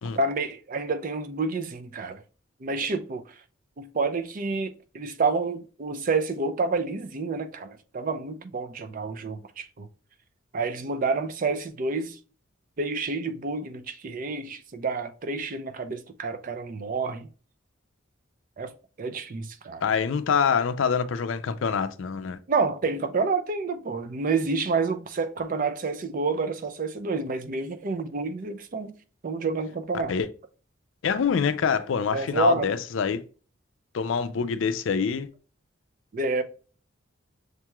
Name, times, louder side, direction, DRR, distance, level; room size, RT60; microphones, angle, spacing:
voice 1, 0.1-2.2 2.6-3.2 3.8-9.9 10.5-12.2 12.8-17.3 18.6-18.7 19.0-19.8 22.5-28.9 29.2-30.1 32.1-32.7 36.1-36.4, right 3 dB, 45° right, 0.4 m, -29 dB
voice 2, 19.8-22.4 30.1-30.3 31.0-33.2 33.9-35.3, left 6 dB, 70° left, 0.4 m, -25 dB
6.5 x 3.0 x 2.2 m
head